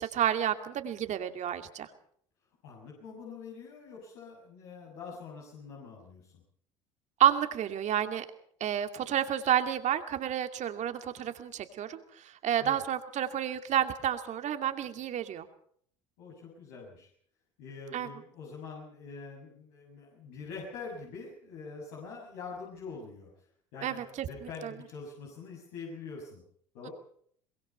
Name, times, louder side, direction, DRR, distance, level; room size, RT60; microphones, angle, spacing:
voice 1, 0.0-1.9 7.2-8.2 8.6-15.5 17.9-18.1 23.8-24.7, right 10 dB, 50° right, 8 dB, 2.4 m, -30 dB
voice 2, 2.6-6.4 12.6-12.8 16.2-17.1 17.6-26.4 26.7-26.9, left 4 dB, 70° left, -3 dB, 6.8 m, -45 dB
23.5 x 21.5 x 5.6 m, 0.63 s
hypercardioid pair, 70°, 16 cm